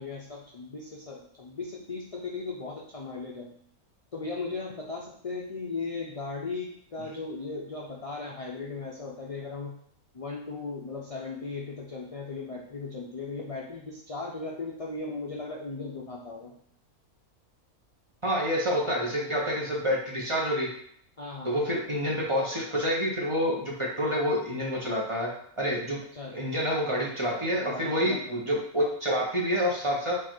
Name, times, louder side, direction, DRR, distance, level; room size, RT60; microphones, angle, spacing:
voice 1, 0.0-3.5 4.1-9.8 10.1-16.6 21.2-21.6 26.1-26.3 27.5-28.4, left 3 dB, 55° left, -3 dB, 0.4 m, -37 dB
voice 2, 18.2-20.7 21.4-25.3 25.6-26.0 26.3-30.2, equal, 25° right, -3 dB, 0.8 m, -28 dB
4.7 x 2.5 x 4.4 m, 0.65 s
omnidirectional pair, 1.5 m